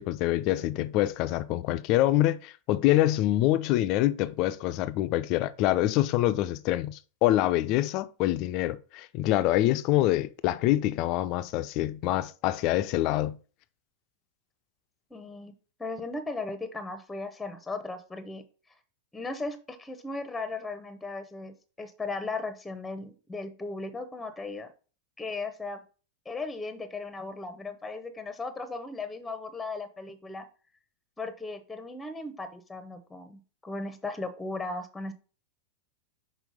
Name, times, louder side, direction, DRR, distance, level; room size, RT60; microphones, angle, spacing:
voice 1, 0.0-13.4, left 15 dB, 40° left, 0.5 m, -25 dB
voice 2, 15.1-15.5 15.8-18.4 19.1-24.7 25.2-25.8 26.2-30.5 31.2-35.1, left 3 dB, 10° left, 0.8 m, -37 dB
6.1 x 4.3 x 5.3 m
figure-of-eight pair, 90°, 0 cm